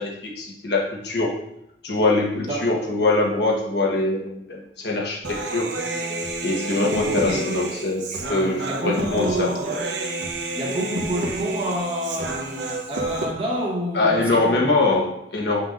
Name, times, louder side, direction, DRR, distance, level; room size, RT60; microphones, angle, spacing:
voice 1, 0.0-1.3 1.8-5.7 6.4-9.5 13.9-15.6, left 2 dB, 65° left, -2 dB, 1.3 m, -23 dB
voice 2, 2.5-2.8 7.0-7.5 8.4-9.8 10.5-12.5 12.9-14.8, right 1 dB, 30° right, -3 dB, 1.2 m, -28 dB
Human voice, 5.2-13.3, right 2 dB, 70° right, 0.9 m, -29 dB
7.5 x 5.7 x 2.6 m, 0.78 s
head